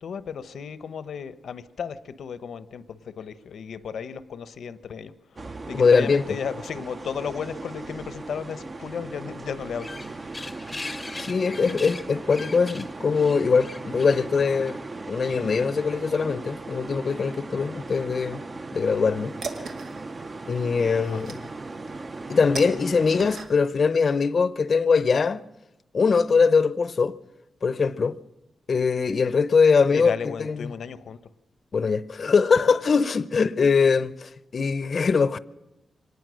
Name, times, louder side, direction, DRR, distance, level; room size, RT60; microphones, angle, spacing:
voice 1, 0.0-5.1 5.4-10.3 21.0-21.2 29.9-31.2, left 7 dB, 85° left, 1.0 m, -34 dB
sound 1, 5.4-23.4, right 3 dB, 30° right, 0.8 m, -38 dB
voice 2, 5.7-6.2 11.2-14.8 15.1-18.4 18.7-19.3 20.5-21.4 22.3-25.4 25.9-27.2 27.6-28.2 28.7-30.7 31.7-35.4, left 5 dB, 50° left, 0.7 m, -22 dB
sound 2, 9.6-15.0, left 2 dB, 20° left, 0.8 m, -40 dB
sound 3, 18.9-23.9, right 5 dB, 85° right, 2.2 m, -40 dB
25.0 x 19.0 x 6.4 m
wide cardioid pair, 130°, 0 cm